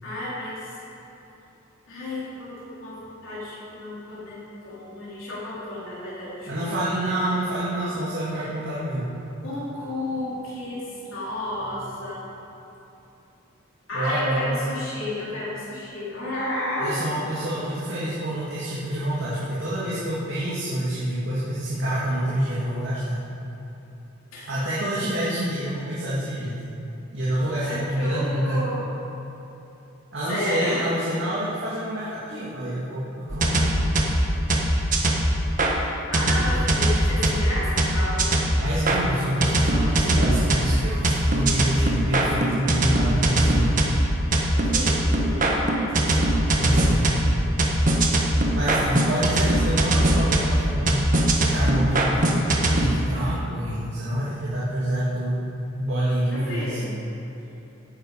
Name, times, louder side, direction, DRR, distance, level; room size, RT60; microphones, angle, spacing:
voice 1, 0.0-0.7 1.9-6.5 7.0-7.8 8.3-8.5 9.4-12.2 13.9-17.0 24.3-24.6 27.6-28.9 30.3-30.8 35.9-38.4 44.5-46.3 56.3-57.0, left 1 dB, 70° left, -8 dB, 3.5 m, -32 dB
voice 2, 6.5-9.0 13.9-14.6 16.8-23.3 24.5-26.6 27.1-28.6 30.1-33.9 38.6-43.8 46.6-47.1 48.5-51.0 51.4-52.3 52.7-55.4 55.8-56.8, right 1 dB, 55° right, -9 dB, 2.5 m, -27 dB
sound 1, 33.3-35.7 36.1-39.0 39.4-52.9, right 1 dB, 40° right, 1.4 m, -21 dB
16.0 x 9.9 x 5.0 m, 3.0 s
head